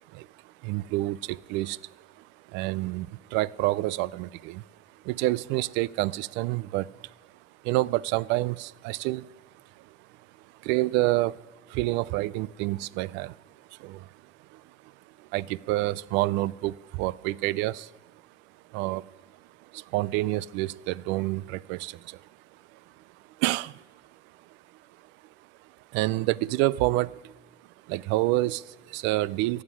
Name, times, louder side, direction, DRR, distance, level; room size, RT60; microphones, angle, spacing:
voice 1, 0.6-1.9 2.5-4.6 5.0-7.1 7.6-9.3 9.8-9.9 10.6-11.4 11.7-13.4 13.8-14.1 14.5-14.6 15.2-17.9 18.7-19.1 19.7-22.2 22.7-22.8 23.4-23.8 25.9-27.3 27.9-29.6, right 18 dB, 80° right, 0.4 m, -28 dB
15.0 x 7.4 x 9.8 m
cardioid pair, 150°, 18 cm